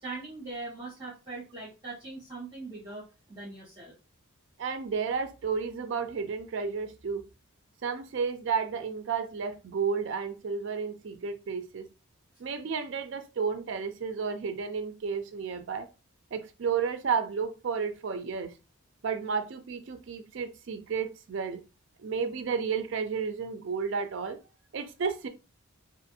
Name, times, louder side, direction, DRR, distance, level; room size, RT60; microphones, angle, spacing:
voice 1, 0.0-3.9, right 3 dB, 20° right, 0.9 m, -41 dB
voice 2, 4.6-7.2 7.8-11.9 12.4-15.9 16.3-18.5 19.0-21.6 22.0-24.4 24.7-25.3, right 5 dB, 55° right, 0.4 m, -32 dB
2.5 x 2.5 x 2.6 m
head